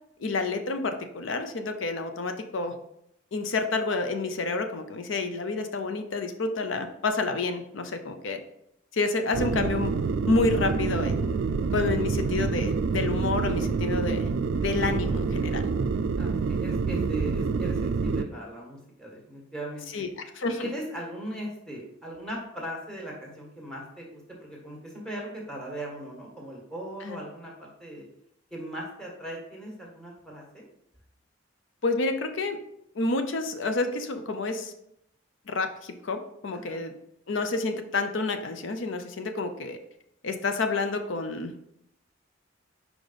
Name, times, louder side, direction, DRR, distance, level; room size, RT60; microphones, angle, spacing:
voice 1, 0.2-2.7 3.3-8.4 8.9-9.9 10.3-11.4 11.7-14.3 14.6-15.6 19.9-20.1 20.4-20.7 27.0-27.2 31.8-32.6 33.0-34.7 35.5-36.9 37.3-39.8 40.2-41.5, left 3 dB, 75° left, 7 dB, 0.6 m, -29 dB
sound 1, 9.3-18.2, right 4 dB, 65° right, 0.3 m, -27 dB
voice 2, 16.1-20.0 20.6-28.0 28.5-30.6 36.6-36.8, right 1 dB, 5° left, -2 dB, 1.5 m, -39 dB
5.0 x 4.9 x 4.0 m, 0.77 s
head